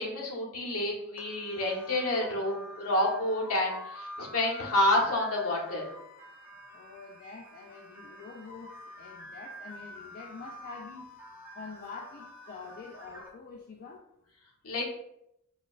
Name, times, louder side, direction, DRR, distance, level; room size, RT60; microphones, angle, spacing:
voice 1, 0.0-5.9 14.6-14.9, left 1 dB, 70° left, -3 dB, 0.9 m, -29 dB
sound 1, 1.2-13.3, left 1 dB, 10° right, 0.5 m, -47 dB
voice 2, 6.7-11.1 11.6-14.0, left 4 dB, 45° left, -2 dB, 0.3 m, -46 dB
4.1 x 2.2 x 2.3 m, 0.77 s
head